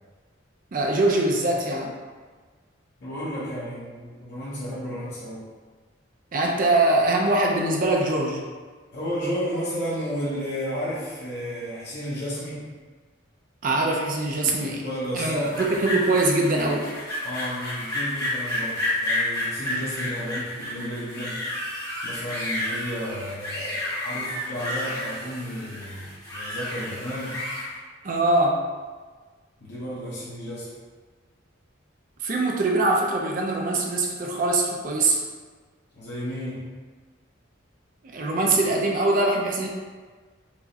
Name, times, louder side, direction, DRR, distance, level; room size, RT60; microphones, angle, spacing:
voice 1, 0.7-2.0 6.3-8.4 13.6-14.8 15.1-16.9 28.0-28.6 32.2-35.2 38.1-39.7, right 2 dB, 45° right, 0 dB, 0.4 m, -22 dB
voice 2, 3.0-5.4 8.9-12.7 14.6-15.6 17.2-21.7 22.0-27.4 29.6-30.7 35.9-36.7, equal, 60° left, -9 dB, 0.8 m, -32 dB
sound 1, 15.4-27.7, left 1 dB, 20° left, 0.9 m, -31 dB
4.6 x 2.1 x 2.7 m, 1.4 s
head